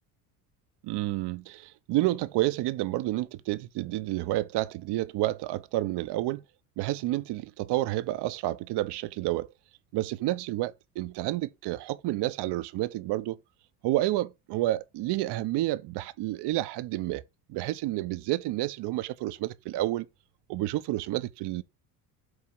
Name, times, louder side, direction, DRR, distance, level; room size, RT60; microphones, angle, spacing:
voice 1, 0.8-6.4 6.8-9.5 9.9-13.4 13.8-17.2 17.5-20.1 20.5-21.6, right 16 dB, 65° right, 0.8 m, -30 dB
7.9 x 2.8 x 5.4 m
supercardioid pair, 75°, 45 cm